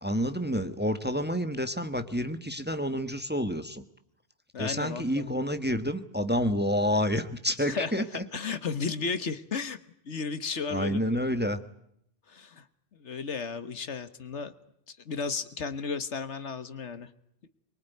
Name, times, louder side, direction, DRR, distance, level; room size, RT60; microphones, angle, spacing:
voice 1, 0.0-3.8 4.6-8.2 10.7-11.6, equal, 10° right, 9 dB, 1.3 m, -29 dB
voice 2, 4.5-5.4 7.7-9.8 10.1-11.0 12.3-12.6 12.9-14.5 14.9-17.1, left 5 dB, 75° left, 12 dB, 1.6 m, -34 dB
24.0 x 22.5 x 9.3 m, 0.73 s
omnidirectional pair, 1.2 m